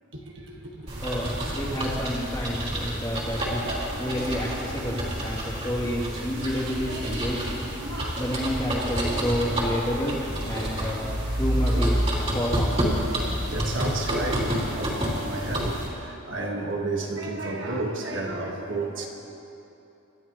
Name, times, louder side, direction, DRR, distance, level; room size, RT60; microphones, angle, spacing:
voice 1, 0.1-0.9 1.2-1.4 3.6-5.4 6.3-7.4 7.7-8.2 9.1-9.8 10.1-10.8 13.5-19.1, right 2 dB, 60° right, -1 dB, 1.6 m, -34 dB
sound 1, 0.9-15.9, equal, 30° right, 3.1 m, -28 dB
voice 2, 1.0-3.7 4.0-7.6 8.2-10.1 10.4-12.0 12.3-12.8, equal, 20° left, -6 dB, 2.8 m, -30 dB
27.0 x 12.5 x 3.1 m, 2.8 s
head